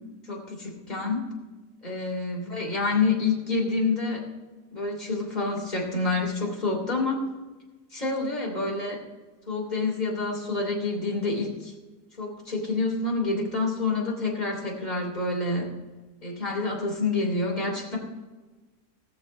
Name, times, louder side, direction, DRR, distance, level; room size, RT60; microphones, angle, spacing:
voice 1, 0.3-1.3 1.8-4.3 4.7-7.2 7.9-9.0 9.5-11.7 12.2-15.7 16.2-18.0, left 3 dB, 25° left, -1 dB, 3.1 m, -28 dB
18.0 x 6.9 x 5.3 m, 1.2 s
omnidirectional pair, 1.6 m